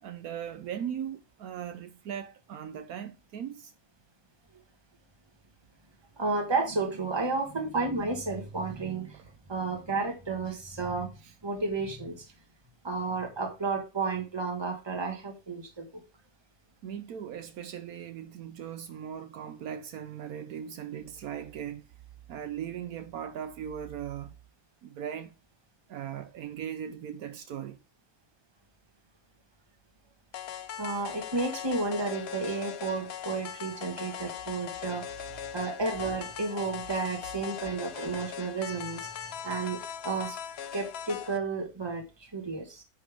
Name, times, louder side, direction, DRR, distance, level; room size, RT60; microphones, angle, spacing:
voice 1, 0.0-3.7 9.1-9.2 16.8-21.8 22.3-24.3 24.8-25.3 25.9-27.8, right 9 dB, 75° right, 1.2 m, -38 dB
voice 2, 6.2-11.1 11.4-12.3 12.8-16.0 30.8-35.3 35.5-40.4 40.7-42.8, right 3 dB, 20° right, 1.5 m, -32 dB
sound 1, 30.3-41.4, left 9 dB, 55° left, 0.8 m, -40 dB
9.6 x 5.7 x 3.5 m
omnidirectional pair, 1.6 m